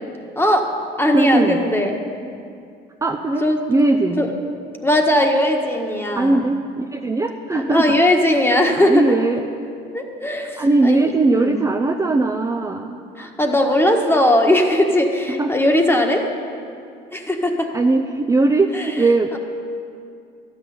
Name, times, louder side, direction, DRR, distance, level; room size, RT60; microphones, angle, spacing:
voice 1, 0.3-0.7 1.0-2.0 3.4-3.6 4.2-4.3 4.8-6.4 7.5-9.2 9.9-11.6 13.2-16.3 17.1-17.7 18.7-19.0 19.3-19.4, left 1 dB, 10° left, 3 dB, 1.6 m, -19 dB
voice 2, 1.1-1.6 3.0-3.4 3.7-4.2 6.1-7.9 8.5-9.4 10.6-13.3 15.4-15.5 17.7-19.4, right 2 dB, 15° right, 2 dB, 0.7 m, -19 dB
12.5 x 6.4 x 9.5 m, 2.4 s
supercardioid pair, 85°, 20 cm